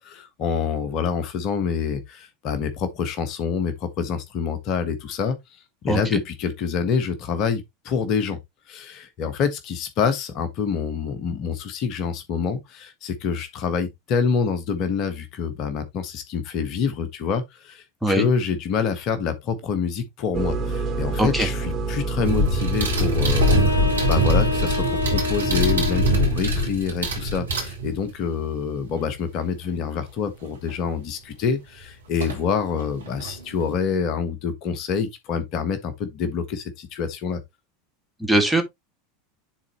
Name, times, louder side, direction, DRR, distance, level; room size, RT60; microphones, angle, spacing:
voice 1, 0.0-8.4 8.7-37.4, left 6 dB, 45° left, 1.3 m, -26 dB
voice 2, 5.9-6.2 18.0-18.3 21.2-21.5 38.2-38.6, right 1 dB, ahead, 1.9 m, -21 dB
sound 1, 20.3-25.9, right 3 dB, 40° right, 2.8 m, -29 dB
sound 2, 22.2-28.2 30.7-30.8 32.2-32.4 32.8-33.7, equal, 75° right, 2.3 m, -22 dB
sound 3, 23.3-26.3, left 3 dB, 85° left, 1.1 m, -27 dB
10.5 x 4.1 x 3.0 m
figure-of-eight pair, 80°, 0 cm